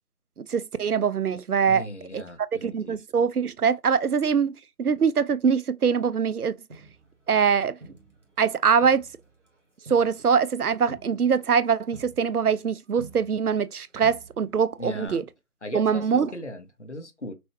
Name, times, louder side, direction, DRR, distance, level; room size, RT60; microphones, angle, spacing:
voice 1, 0.4-1.9 2.1-2.2 2.6-6.5 7.3-7.8 8.4-9.0 9.9-15.2 15.7-16.3, right 6 dB, 75° right, 0.6 m, -23 dB
voice 2, 1.7-3.0 14.8-15.2 15.6-17.3, left 1 dB, 50° left, 0.9 m, -38 dB
Crowd, 6.7-8.5 8.8-13.7 14.0-14.7 15.1-15.2, right 3 dB, 50° right, 1.6 m, -48 dB
6.0 x 2.3 x 3.0 m
figure-of-eight pair, 170°, 46 cm